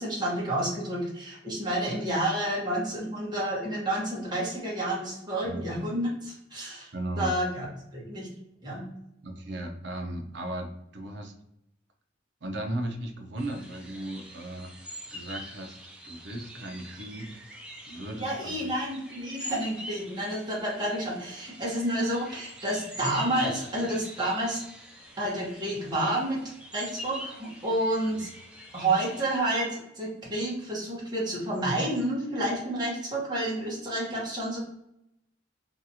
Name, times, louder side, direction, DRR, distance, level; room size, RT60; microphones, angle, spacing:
voice 1, 0.0-8.3 8.6-8.9 18.1-24.6 25.2-26.4 26.7-28.3 28.7-34.6, right 1 dB, 20° right, -4 dB, 0.9 m, -30 dB
voice 2, 6.9-7.4 9.2-11.3 12.4-14.7 15.1-15.8 16.0-17.4 17.9-18.7 28.1-28.2, right 1 dB, 60° right, 4 dB, 0.5 m, -36 dB
may dawn in the forest, 13.4-29.4, equal, 5° right, 0.3 m, -44 dB
2.7 x 2.4 x 2.7 m, 0.81 s
head